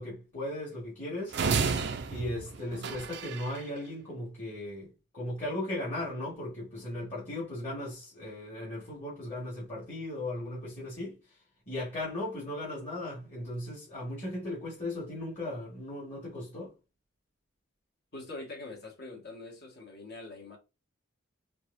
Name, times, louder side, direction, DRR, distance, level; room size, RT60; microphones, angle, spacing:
voice 1, 0.0-1.7 2.1-11.2 11.7-16.7, left 1 dB, 40° left, 1.8 m, -37 dB
sound 1, 1.3-3.6, right 5 dB, 60° right, 0.5 m, -31 dB
voice 2, 18.1-20.6, left 2 dB, 60° left, 1.7 m, -44 dB
4.5 x 3.0 x 2.6 m
head